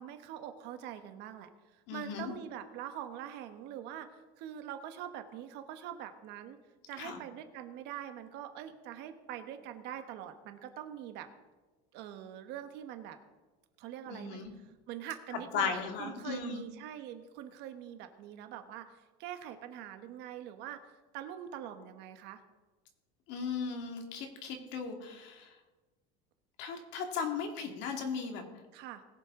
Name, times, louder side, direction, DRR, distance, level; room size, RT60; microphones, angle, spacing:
voice 1, 0.0-1.5 1.9-6.6 6.9-11.3 11.9-13.2 13.8-22.4 28.7-29.0, right 10 dB, 55° right, 8 dB, 1.2 m, -44 dB
voice 2, 1.9-2.3 7.0-7.2 14.1-14.5 15.3-16.6 23.3-25.6 26.6-28.4, left 5 dB, 60° left, 4 dB, 2.1 m, -37 dB
20.5 x 7.5 x 3.7 m, 1.2 s
cardioid pair, 160°, 21 cm